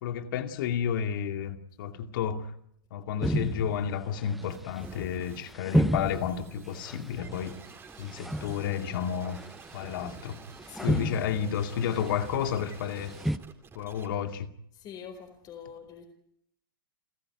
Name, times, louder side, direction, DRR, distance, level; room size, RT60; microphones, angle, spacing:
voice 1, 0.0-2.5 2.9-7.6 8.0-9.4 9.7-10.4 10.8-13.2 13.7-14.5, left 8 dB, 65° left, 2.5 m, -31 dB
sound 1, 3.2-13.4, equal, ahead, 0.9 m, -33 dB
sound 2, 4.4-14.1, right 6 dB, 20° right, 3.9 m, -51 dB
voice 2, 10.6-11.6 14.7-16.0, left 7 dB, 35° left, 4.5 m, -45 dB
30.0 x 14.5 x 9.5 m
hypercardioid pair, 125°, 12 cm